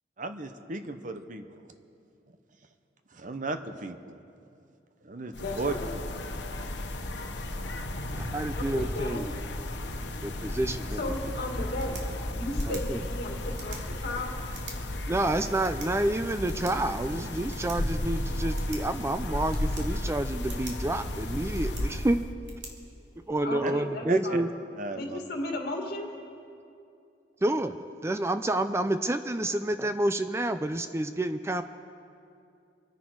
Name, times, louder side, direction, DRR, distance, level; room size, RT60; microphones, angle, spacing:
voice 1, 0.2-1.6 3.1-4.2 5.0-5.7 7.7-7.8 23.6-23.7 24.1-24.4 24.8-25.2, right 3 dB, 45° right, 8 dB, 0.9 m, -35 dB
sound 1, 5.3-22.3, left 1 dB, 85° left, 1.2 m, -34 dB
voice 2, 5.4-5.9 8.6-9.3 10.9-12.0 12.4-14.3 23.4-24.4 24.9-26.1, left 1 dB, 60° left, 2 dB, 2.1 m, -35 dB
voice 3, 8.1-9.3 10.2-11.0 12.7-13.0 15.1-22.2 23.3-24.5 27.4-27.8 28.0-31.6, right 1 dB, 15° right, 10 dB, 0.4 m, -29 dB
sound 2, 11.6-23.6, right 4 dB, 90° right, 2.3 m, -50 dB
26.0 x 10.5 x 4.7 m, 2.5 s
head